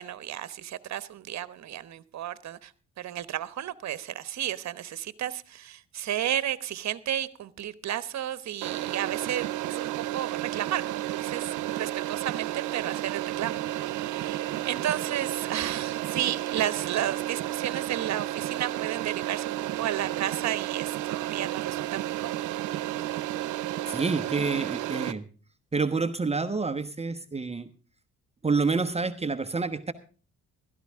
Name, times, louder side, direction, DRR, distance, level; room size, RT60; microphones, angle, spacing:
voice 1, 0.0-2.7 3.0-22.6, right 11 dB, 65° right, 1.1 m, -33 dB
sound 1, 8.6-25.1, right 14 dB, 85° right, 0.9 m, -32 dB
voice 2, 23.9-25.2 25.7-27.7 28.4-29.9, right 4 dB, 20° right, 1.1 m, -28 dB
16.0 x 13.0 x 3.6 m
cardioid pair, 90°, 30 cm